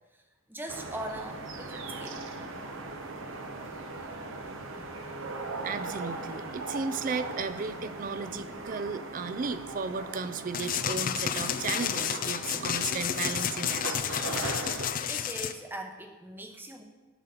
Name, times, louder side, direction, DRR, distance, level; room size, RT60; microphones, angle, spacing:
voice 1, 0.5-2.2 15.1-16.8, right 1 dB, 10° right, 3 dB, 0.8 m, -40 dB
sound 1, 0.7-14.9, right 3 dB, 65° right, 0.9 m, -39 dB
sound 2, 1.1-8.7, left 1 dB, 25° left, 1.4 m, -52 dB
voice 2, 5.6-13.8, right 4 dB, 40° right, 12 dB, 0.4 m, -35 dB
sound 3, 10.5-15.5, left 9 dB, 40° left, 0.4 m, -31 dB
12.0 x 4.1 x 6.8 m, 1.2 s
head